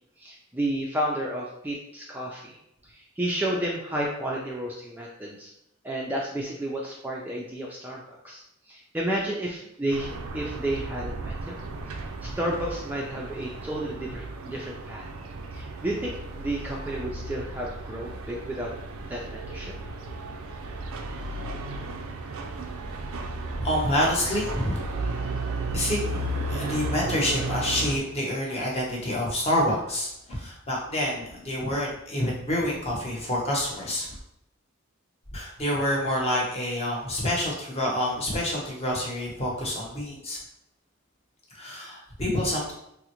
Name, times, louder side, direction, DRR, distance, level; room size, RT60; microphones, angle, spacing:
voice 1, 0.2-2.6 2.9-5.5 5.8-11.6 12.2-15.1 15.5-18.7 19.1-19.7, right 1 dB, 10° right, -4 dB, 0.3 m, -31 dB
sound 1, 9.9-28.0, right 2 dB, 90° right, 0.4 m, -34 dB
voice 2, 23.6-24.9 25.7-34.2 35.3-40.4 41.5-42.7, left 1 dB, 30° left, -3 dB, 0.8 m, -28 dB
3.6 x 2.0 x 2.9 m, 0.80 s
head